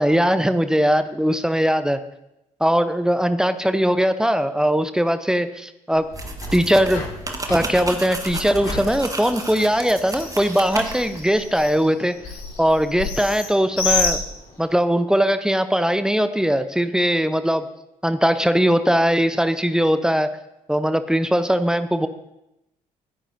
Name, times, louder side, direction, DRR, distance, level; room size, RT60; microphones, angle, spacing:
voice 1, 0.0-2.0 2.6-6.1 6.5-7.0 7.5-12.2 12.6-14.2 14.6-17.7 18.0-20.3 20.7-22.1, equal, 5° right, 11 dB, 0.9 m, -20 dB
Bird, 5.9-14.8, left 4 dB, 50° left, 3.6 m, -31 dB
sound 1, 6.1-11.2, right 2 dB, 20° right, 1.6 m, -32 dB
20.5 x 10.0 x 2.8 m, 0.88 s
figure-of-eight pair, 45°, 18 cm